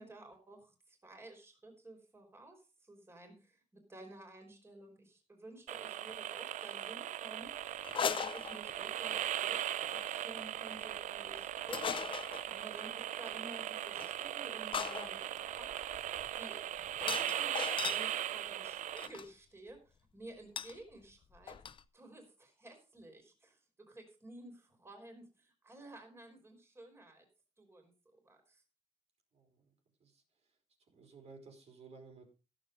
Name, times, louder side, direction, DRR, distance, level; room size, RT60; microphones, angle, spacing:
voice 1, 0.0-12.2 12.5-15.2 15.5-21.6 21.9-27.2 27.6-28.6, right 2 dB, 20° right, 4 dB, 3.7 m, -53 dB
sound 1, 5.7-19.1, right 11 dB, 90° right, 0.5 m, -39 dB
sound 2, 7.8-9.1 9.8-10.1 11.7-12.5 14.0-14.1 14.7-18.1 19.0-19.3 20.6-20.8 21.0-21.1 21.4-21.8, left 7 dB, 45° left, 0.7 m, -39 dB
voice 2, 29.3-29.7 30.0-30.2 30.9-32.3, right 4 dB, 60° right, 4 dB, 3.8 m, -55 dB
14.5 x 7.5 x 5.2 m, 0.31 s
wide cardioid pair, 165°, 12 cm